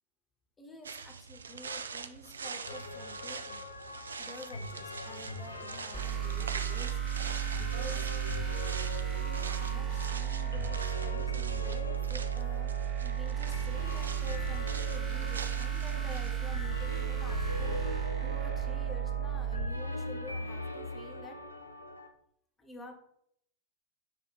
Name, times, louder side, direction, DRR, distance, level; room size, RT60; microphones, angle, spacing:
voice 1, 0.6-3.6 4.2-8.1 9.2-21.4 22.6-22.9, left 1 dB, 15° left, 1 dB, 1.0 m, -49 dB
sound 1, 0.8-16.3, right 5 dB, 70° right, 0.3 m, -44 dB
sound 2, 2.6-22.1, left 2 dB, 80° left, 0.5 m, -41 dB
sound 3, 5.9-19.6, right 10 dB, 25° right, 0.7 m, -34 dB
5.9 x 2.6 x 3.2 m, 0.70 s
figure-of-eight pair, 90°, 0 cm